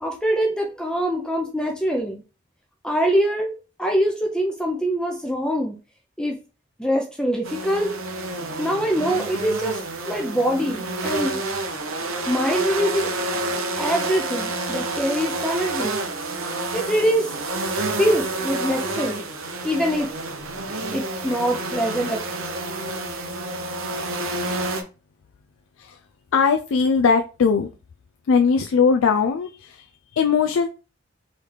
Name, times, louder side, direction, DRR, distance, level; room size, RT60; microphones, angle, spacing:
voice 1, 0.0-2.2 2.8-5.8 6.2-6.4 6.8-7.9 8.6-9.8 10.0-11.4 12.3-13.1 13.8-16.0 16.7-17.3 18.0-19.2 19.6-20.1 20.9-22.2, equal, 5° left, 1 dB, 0.5 m, -23 dB
sound 1, 7.4-24.8, right 2 dB, 85° right, 0.8 m, -29 dB
voice 2, 26.3-27.7 28.3-30.7, left 5 dB, 75° left, 6 dB, 0.3 m, -20 dB
3.9 x 3.2 x 3.3 m, 0.32 s
head